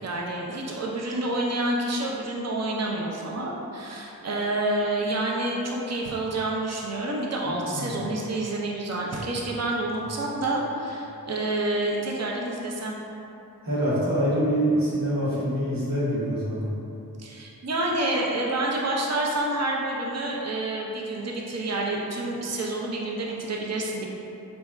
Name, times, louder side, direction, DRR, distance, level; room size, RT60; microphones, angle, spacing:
voice 1, 0.0-13.0 17.2-24.0, right 2 dB, 45° right, -2 dB, 0.6 m, -28 dB
voice 2, 7.5-8.0 13.6-16.7, equal, 65° right, -9 dB, 1.4 m, -25 dB
4.0 x 3.3 x 2.4 m, 2.9 s
cardioid pair, 40°, 36 cm